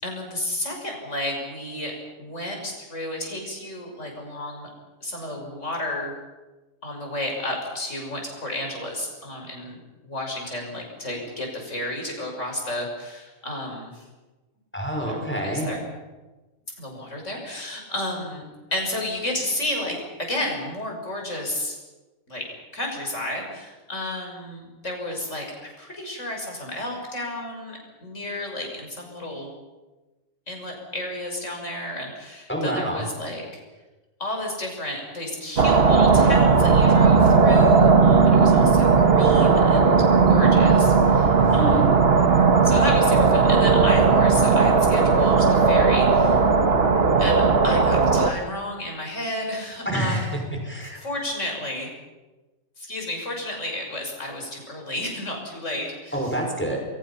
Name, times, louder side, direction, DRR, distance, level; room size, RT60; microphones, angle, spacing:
voice 1, 0.0-4.7 5.0-6.1 6.8-9.8 10.0-14.0 15.0-15.8 16.8-18.4 18.7-21.8 22.3-29.5 30.5-33.4 34.2-40.0 40.3-42.0 42.6-46.4 47.2-50.5 51.0-51.9 52.8-56.2, left 1 dB, 60° left, 1 dB, 6.3 m, -32 dB
voice 2, 14.7-15.7 32.5-33.0 41.4-41.8 49.9-51.0 56.1-56.8, right 1 dB, 10° left, 1 dB, 5.5 m, -27 dB
sound 1, 35.6-48.3, right 4 dB, 45° right, 1.6 m, -17 dB
29.0 x 22.5 x 5.8 m, 1.2 s
omnidirectional pair, 1.5 m